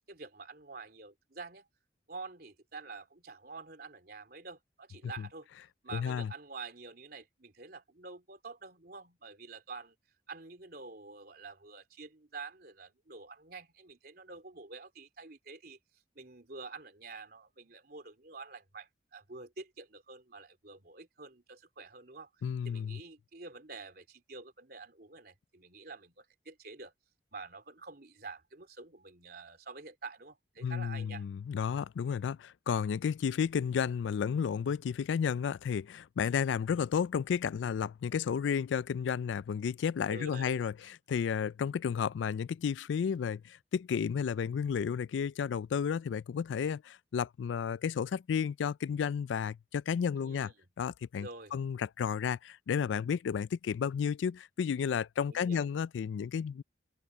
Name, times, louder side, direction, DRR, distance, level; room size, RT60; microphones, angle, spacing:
voice 1, 0.1-1.7 2.1-5.5 5.8-10.0 10.3-15.8 16.2-22.3 22.7-26.9 27.3-31.3 40.1-40.6 50.2-50.6 51.2-51.5 55.3-55.7, right 4 dB, 55° right, 3.6 m, -48 dB
voice 2, 5.9-6.3 22.4-23.0 30.6-50.5 50.8-56.6, left 7 dB, 85° left, 0.3 m, -32 dB
open air
head